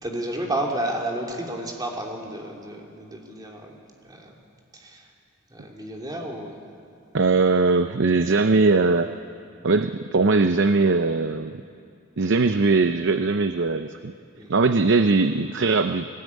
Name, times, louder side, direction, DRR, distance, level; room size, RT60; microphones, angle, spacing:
voice 1, 0.0-3.8 4.0-4.3 4.7-5.1 5.5-6.6 14.4-14.5, right 1 dB, 20° right, 0 dB, 2.9 m, -31 dB
voice 2, 7.1-9.1 9.6-11.6 12.2-14.1 14.5-16.1, right 3 dB, 60° right, 9 dB, 0.6 m, -20 dB
22.0 x 19.0 x 9.5 m, 2.4 s
head